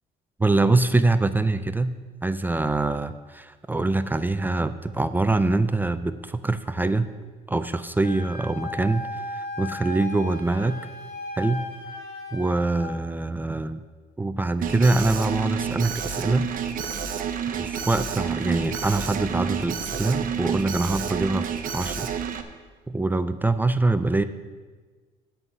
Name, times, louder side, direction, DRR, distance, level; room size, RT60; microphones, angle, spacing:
voice 1, 0.4-1.9 2.2-7.1 7.5-9.0 9.3-10.8 11.4-11.7 12.3-13.8 14.2-16.5 17.5-21.5 21.7-22.1 22.9-24.2, right 2 dB, 10° right, 11 dB, 0.4 m, -24 dB
Wind instrument woodwind instrument, 8.0-13.0, left 2 dB, 70° left, 2.0 m, -36 dB
Alarm, 14.6-22.4, right 8 dB, 55° right, 0.9 m, -29 dB
9.7 x 5.7 x 8.1 m, 1.4 s
cardioid pair, 110°, 17 cm